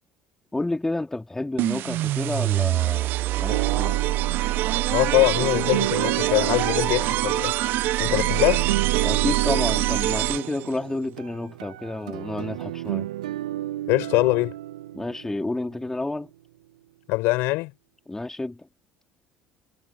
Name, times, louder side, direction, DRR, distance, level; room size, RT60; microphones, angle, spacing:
voice 1, 0.5-4.0 9.0-13.1 14.9-16.3 18.1-18.7, left 2 dB, 10° left, 3.4 m, -30 dB
sound 1, 1.6-10.7, right 15 dB, 60° right, 0.8 m, -24 dB
sound 2, 3.5-16.0, right 14 dB, 80° right, 1.2 m, -32 dB
voice 2, 4.9-7.5 8.0-8.7 13.9-14.5 17.1-17.7, left 23 dB, 65° left, 7.5 m, -23 dB
hypercardioid pair, 60°, 4 cm